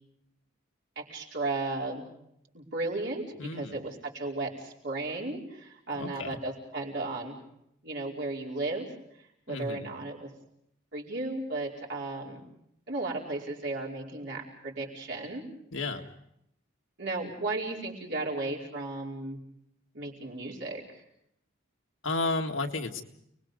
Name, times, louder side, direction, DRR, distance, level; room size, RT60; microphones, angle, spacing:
voice 1, 1.0-2.1 2.5-3.2 3.5-7.4 7.8-8.9 9.2-10.3 10.9-12.4 12.9-15.4 17.0-19.4 19.9-21.0, right 2 dB, 55° right, -3 dB, 5.1 m, -35 dB
voice 2, 3.4-3.8 5.9-6.4 9.5-9.9 15.7-16.1 22.0-23.0, left 3 dB, 75° left, 3 dB, 1.9 m, -32 dB
29.5 x 21.0 x 5.3 m, 0.77 s
head